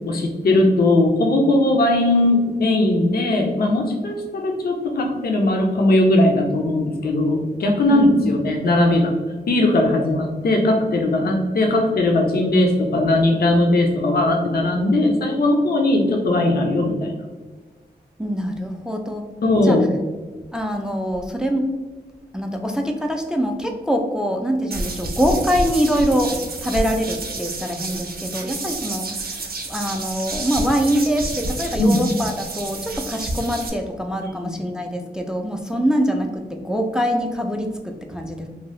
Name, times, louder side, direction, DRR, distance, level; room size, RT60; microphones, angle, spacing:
voice 1, 0.1-9.1 9.5-17.1 19.4-19.9 31.8-32.0 34.4-34.6, left 1 dB, 60° left, 2 dB, 0.5 m, -19 dB
voice 2, 7.9-8.4 18.2-19.2 19.6-19.8 20.5-21.8 22.3-29.4 29.7-38.5, equal, 5° right, 4 dB, 0.3 m, -24 dB
sound 1, 24.7-33.7, right 2 dB, 55° right, 0.5 m, -29 dB
2.7 x 2.2 x 3.1 m, 1.3 s
wide cardioid pair, 70°, 18 cm